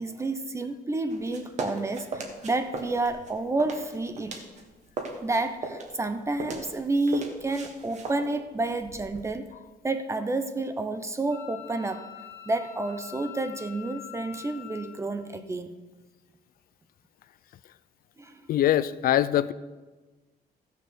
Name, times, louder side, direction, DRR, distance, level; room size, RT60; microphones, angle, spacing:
voice 1, 0.0-4.4 5.2-9.5 9.8-12.1 12.5-15.7 18.2-18.4, right 2 dB, 15° right, 9 dB, 0.6 m, -30 dB
sound 1, 1.1-4.6 4.9-9.3, right 3 dB, 45° right, 1.4 m, -38 dB
Wind instrument woodwind instrument, 11.3-15.0, left 13 dB, 15° left, 1.9 m, -45 dB
voice 2, 18.5-19.5, left 12 dB, 60° left, 16 dB, 0.4 m, -23 dB
14.0 x 6.5 x 6.7 m, 1.2 s
cardioid pair, 180°, 17 cm